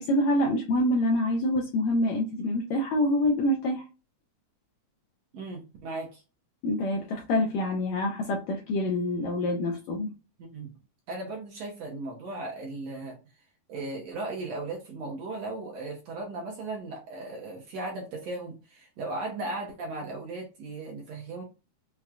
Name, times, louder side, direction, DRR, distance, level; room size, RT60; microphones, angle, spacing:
voice 1, 0.0-3.8 6.6-10.1, left 1 dB, 80° left, 0 dB, 1.6 m, -26 dB
voice 2, 5.3-6.2 10.4-10.7 11.1-13.2 13.7-21.4, right 2 dB, 70° right, -1 dB, 1.7 m, -37 dB
5.9 x 2.2 x 2.4 m, 0.31 s
omnidirectional pair, 3.8 m